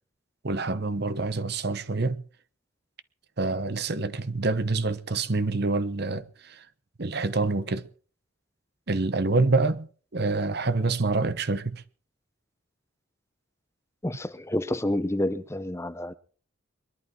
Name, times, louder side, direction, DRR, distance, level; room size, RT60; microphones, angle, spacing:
voice 1, 0.4-2.2 3.4-6.7 7.0-7.9 8.9-11.8, right 3 dB, 50° right, 0.9 m, -27 dB
voice 2, 14.0-16.1, left 1 dB, 15° left, 0.7 m, -29 dB
22.5 x 11.5 x 4.7 m
head